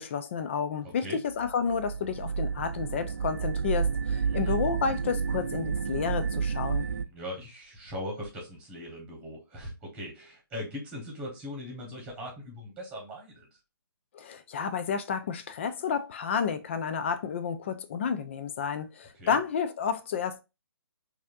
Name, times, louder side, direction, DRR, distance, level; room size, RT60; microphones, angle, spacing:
voice 1, 0.0-6.9 14.1-20.4, left 6 dB, 30° left, 0.4 m, -31 dB
voice 2, 0.8-1.2 4.2-4.6 6.9-13.5 19.1-19.4, left 1 dB, 10° right, 1.5 m, -40 dB
sound 1, 1.3-7.1, right 6 dB, 55° right, 0.4 m, -30 dB
4.8 x 2.7 x 2.5 m
figure-of-eight pair, 145°, 13 cm